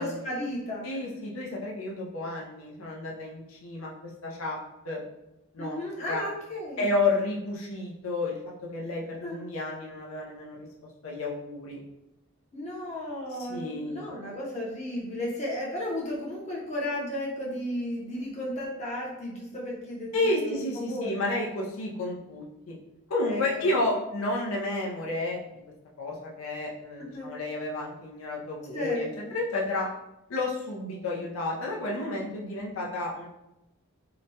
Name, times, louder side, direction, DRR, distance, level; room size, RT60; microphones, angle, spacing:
voice 1, 0.0-0.9 5.6-6.9 9.2-9.4 12.5-21.2 23.3-23.8 27.0-27.3 28.7-29.3, left 1 dB, 35° left, -6 dB, 0.7 m, -34 dB
voice 2, 0.8-4.6 4.8-5.0 5.5-5.8 6.1-6.2 6.8-8.4 8.7-10.6 11.0-11.8 13.3-14.1 20.1-22.7 23.1-25.4 26.0-29.9 30.3-33.3, left 2 dB, 85° left, -3 dB, 0.5 m, -31 dB
2.8 x 2.1 x 2.7 m, 0.93 s
head